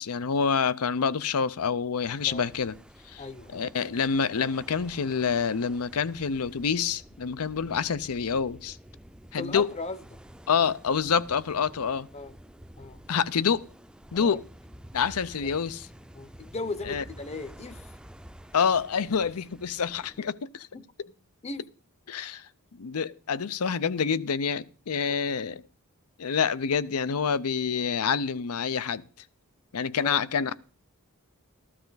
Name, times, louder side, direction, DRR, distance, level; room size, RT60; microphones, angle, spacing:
voice 1, 0.0-2.7 3.1-3.2 3.5-8.8 9.3-9.7 10.5-12.1 13.1-13.6 14.1-14.4 14.9-15.9 16.9-17.0 18.5-20.7 22.1-22.4 22.7-25.6 26.2-29.0 29.7-30.6, left 6 dB, 75° left, 0.6 m, -27 dB
sound 1, 2.0-20.2, equal, 5° right, 0.5 m, -50 dB
voice 2, 3.2-3.7 9.4-10.0 12.1-12.3 12.8-13.0 14.1-14.4 15.4-15.6 16.1-17.9 20.7-20.8 21.4-21.6 30.0-30.2, left 3 dB, 30° left, 0.7 m, -37 dB
14.0 x 12.5 x 4.0 m
head